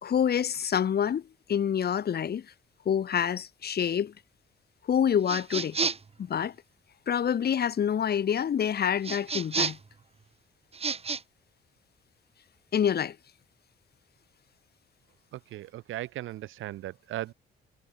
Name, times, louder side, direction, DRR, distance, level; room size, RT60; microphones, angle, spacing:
voice 1, 0.0-1.2 1.5-2.4 2.9-4.1 4.9-5.8 6.2-6.5 7.1-9.8 12.7-13.2, left 8 dB, 55° left, 2.1 m, -27 dB
sound 1, 5.3-6.1 9.0-9.9 10.7-11.2, right 5 dB, 30° right, 1.8 m, -30 dB
voice 2, 15.3-17.3, right 14 dB, 85° right, 2.1 m, -37 dB
cardioid pair, 90°, 20 cm